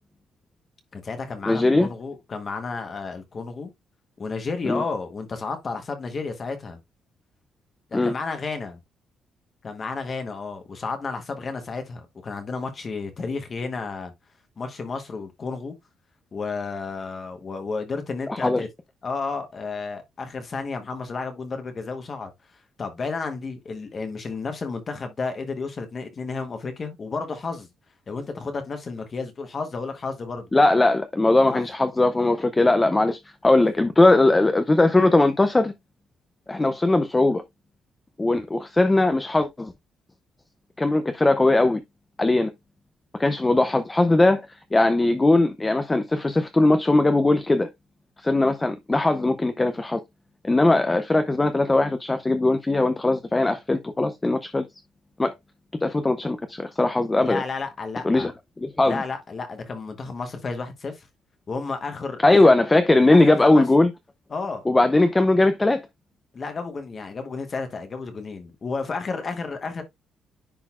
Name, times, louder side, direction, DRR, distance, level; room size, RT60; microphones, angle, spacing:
voice 1, 0.9-3.7 4.2-6.8 7.9-8.8 9.6-14.1 14.6-15.7 16.3-18.7 19.0-22.3 22.8-27.7 28.1-30.5 31.5-31.6 57.2-58.3 58.8-61.1 61.5-62.5 63.1-63.6 64.3-64.6 66.3-69.8, left 4 dB, 30° left, 1.1 m, -32 dB
voice 2, 1.5-1.9 4.6-4.8 7.9-8.1 18.3-18.6 30.5-35.7 36.5-37.4 38.2-39.7 40.8-41.8 42.2-42.5 43.2-44.4 44.7-47.7 48.2-50.0 50.4-54.7 55.2-55.3 55.8-57.4 58.0-58.3 58.6-59.0 62.2-63.9 64.7-65.8, left 2 dB, 10° left, 0.5 m, -19 dB
10.0 x 3.9 x 2.4 m
cardioid pair, 165°, 0 cm